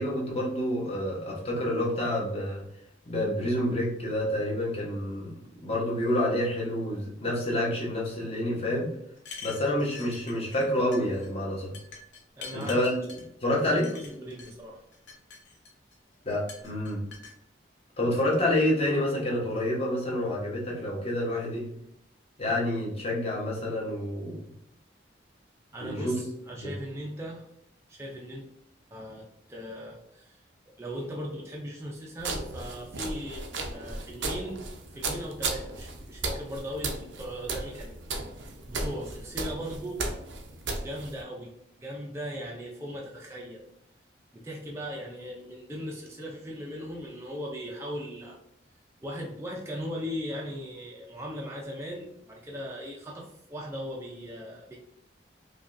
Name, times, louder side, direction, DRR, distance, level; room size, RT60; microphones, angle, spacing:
voice 1, 0.0-2.6 3.1-5.3 5.6-8.9 9.4-11.7 12.5-12.9 13.4-13.9 16.2-17.0 18.0-21.7 22.4-24.4 25.8-26.2 26.6-26.7, left 1 dB, 35° left, -4 dB, 1.1 m, -28 dB
sound 1, 9.2-10.7 10.9-11.3 11.7-13.3 13.8-14.5 14.9-16.0 16.5-17.4, left 5 dB, 75° left, 0.7 m, -45 dB
voice 2, 12.4-12.8 13.5-14.8 25.7-27.5 27.9-28.4 28.9-30.4 30.8-37.9 38.4-40.1 40.8-43.6 44.3-48.4 49.0-54.8, equal, 15° right, -3 dB, 0.5 m, -38 dB
sound 2, 32.2-41.2, right 3 dB, 85° right, 0.6 m, -35 dB
4.9 x 2.4 x 2.5 m, 0.75 s
head